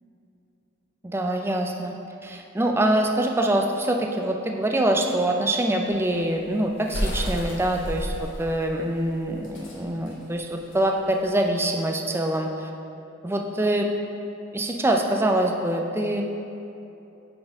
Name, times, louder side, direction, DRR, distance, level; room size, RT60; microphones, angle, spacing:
voice 1, 1.0-1.9 2.2-12.7 13.2-13.9 14.5-16.2, right 1 dB, 10° right, 2 dB, 0.4 m, -24 dB
sound 1, 5.9-11.4, equal, 60° left, 1.1 m, -32 dB
6.1 x 4.1 x 4.8 m, 2.9 s
head